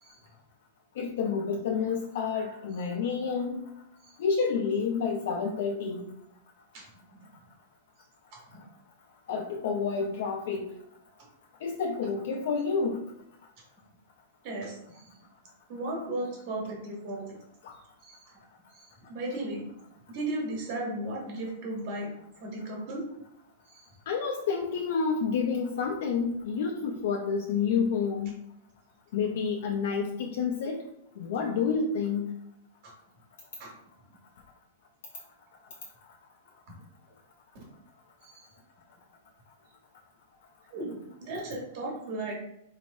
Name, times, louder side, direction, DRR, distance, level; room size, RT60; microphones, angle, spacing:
voice 1, 1.0-3.6 4.2-6.1 9.3-10.7 11.6-13.0 17.6-17.7 24.1-28.3 29.1-30.8 31.2-32.3, left 5 dB, 55° left, 2 dB, 0.4 m, -29 dB
voice 2, 14.4-15.1 15.7-17.3 18.0-18.4 18.7-19.7 20.1-22.1 22.4-23.0 23.7-23.9 32.8-32.9 33.6-33.7 38.2-38.4 40.7-42.3, right 1 dB, 35° right, -2 dB, 1.3 m, -36 dB
4.2 x 3.1 x 2.7 m, 0.80 s
supercardioid pair, 175°, 0 cm